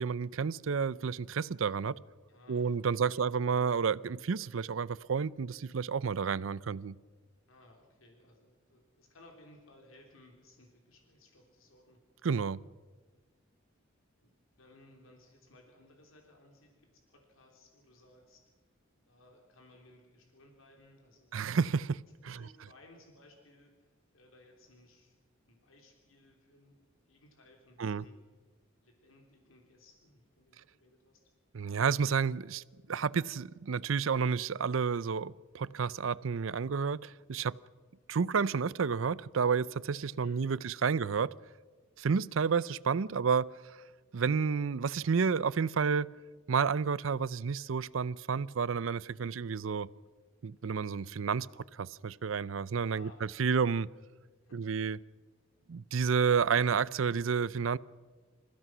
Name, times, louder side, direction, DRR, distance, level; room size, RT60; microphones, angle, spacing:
voice 1, 0.0-2.0 2.5-7.0 12.2-12.6 21.3-22.4 27.8-28.0 31.5-32.6 32.9-37.6 38.1-41.3 42.0-43.5 44.1-46.1 46.5-49.9 50.4-53.1 53.4-53.9 54.5-55.0 55.7-57.8, right 6 dB, 75° right, 0.5 m, -30 dB
voice 2, 2.3-3.3 7.5-12.0 14.2-18.5 19.1-21.3 22.3-25.2 25.5-28.1 28.8-31.2 40.2-41.0 52.9-53.6 54.4-54.6, left 1 dB, 85° left, 3.4 m, -60 dB
27.0 x 15.5 x 6.2 m
head